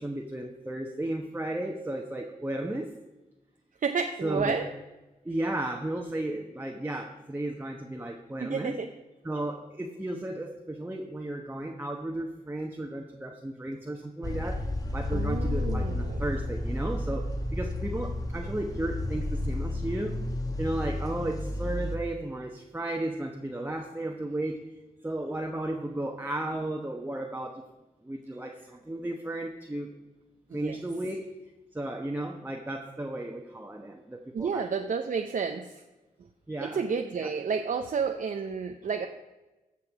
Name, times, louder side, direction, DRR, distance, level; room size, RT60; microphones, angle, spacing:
voice 1, 0.0-2.9 4.2-4.6 5.2-8.8 9.2-14.7 14.9-20.2 20.6-24.6 25.0-27.6 28.0-29.9 30.5-31.2 31.7-34.7 36.5-36.8 37.2-37.3, right 1 dB, 15° right, 2 dB, 1.1 m, -34 dB
voice 2, 3.8-4.7 8.4-8.9 15.1-16.3 30.5-30.8 34.3-35.8 36.6-39.1, right 5 dB, 65° right, 5 dB, 0.6 m, -31 dB
Coquis in the rain - Hawaii, 14.2-22.0, left 1 dB, 25° left, 1.5 m, -32 dB
14.5 x 5.9 x 4.8 m, 1.1 s
cardioid pair, 45°, 15 cm